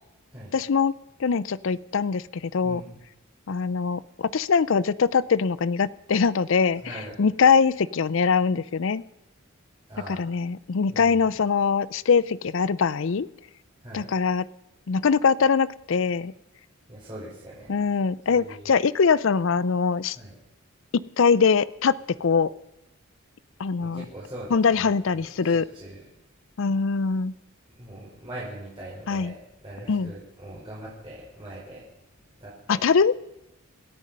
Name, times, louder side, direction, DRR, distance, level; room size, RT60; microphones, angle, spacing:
voice 1, 0.5-0.9 1.2-2.8 3.5-6.8 7.2-9.0 10.1-13.3 13.9-14.5 14.9-16.3 17.7-20.2 20.9-22.5 23.6-24.0 24.5-25.7 26.6-27.3 29.1-29.3 29.9-30.1 32.7-33.1, left 5 dB, 60° left, 19 dB, 0.5 m, -22 dB
voice 2, 2.6-3.0 6.8-7.2 9.9-10.2 10.9-11.3 13.8-14.1 16.9-17.7 18.3-18.7 20.1-20.3 23.8-26.0 27.8-31.9 32.2-32.8, right 1 dB, 25° right, -7 dB, 4.8 m, -41 dB
26.5 x 9.1 x 5.4 m, 0.93 s
head